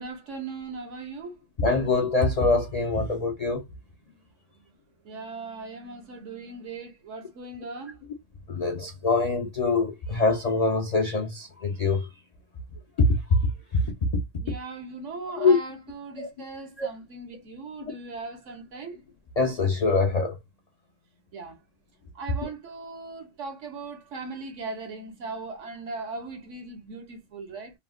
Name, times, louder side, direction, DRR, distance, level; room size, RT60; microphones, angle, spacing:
voice 1, 0.0-1.4 5.0-8.0 14.4-19.0 21.3-21.6 22.1-27.7, right 3 dB, 85° right, 1.2 m, -38 dB
voice 2, 1.6-3.6 8.5-12.1 13.0-13.4 13.7-13.8 15.4-15.6 16.2-16.3 16.8-16.9 19.4-20.4, left 3 dB, 60° left, 0.4 m, -24 dB
3.1 x 2.1 x 2.3 m
omnidirectional pair, 1.3 m